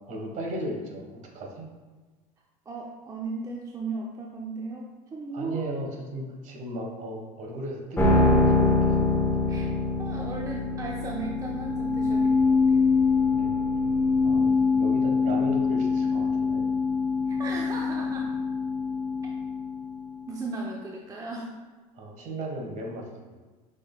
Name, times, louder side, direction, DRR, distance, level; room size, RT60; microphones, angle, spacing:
voice 1, 0.1-1.1 1.3-1.6 5.3-9.2 13.3-13.6 14.2-16.6 21.9-23.0, right 1 dB, 45° right, 0 dB, 1.3 m, -36 dB
voice 2, 2.7-5.7 9.5-9.7 10.0-12.9 17.3-18.3 20.3-21.5, right 3 dB, 20° right, -1 dB, 0.5 m, -36 dB
sound 1, 8.0-20.3, left 4 dB, 10° left, 0.9 m, -24 dB
6.1 x 3.8 x 2.3 m, 1.3 s
supercardioid pair, 100°, 18 cm